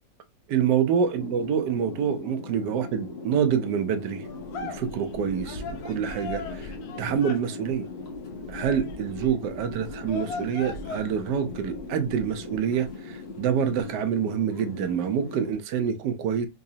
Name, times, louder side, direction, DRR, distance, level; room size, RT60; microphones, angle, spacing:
voice 1, 0.5-4.3 4.7-6.7 7.0-7.9 8.5-16.5, right 8 dB, 85° right, 1.3 m, -26 dB
sound 1, 1.2-15.5, left 4 dB, 40° left, 1.2 m, -39 dB
sound 2, 4.2-12.9 13.3-14.0, left 3 dB, 70° left, 1.2 m, -40 dB
3.9 x 3.1 x 2.7 m
omnidirectional pair, 1.8 m